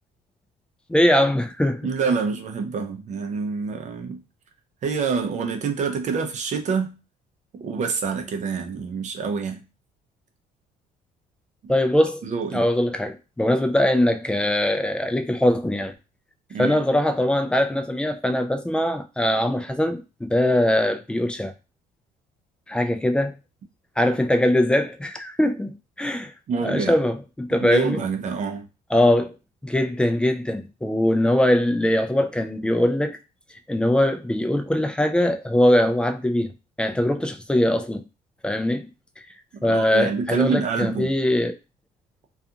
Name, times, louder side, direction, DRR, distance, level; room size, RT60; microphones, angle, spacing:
voice 1, 0.9-1.9 11.7-12.2 12.5-15.9 16.6-21.5 22.7-23.3 24.0-26.3 26.6-28.0 28.9-29.3 29.6-33.2 33.7-36.5 36.8-38.0 38.4-38.9 39.6-41.6, left 1 dB, 5° left, 0.3 m, -21 dB
voice 2, 1.8-4.2 4.8-7.0 7.5-9.6 12.2-12.6 16.5-16.8 26.5-26.9 27.6-28.7 39.5-41.1, right 5 dB, 45° right, 0.6 m, -26 dB
2.4 x 2.3 x 2.7 m
cardioid pair, 110°, 17 cm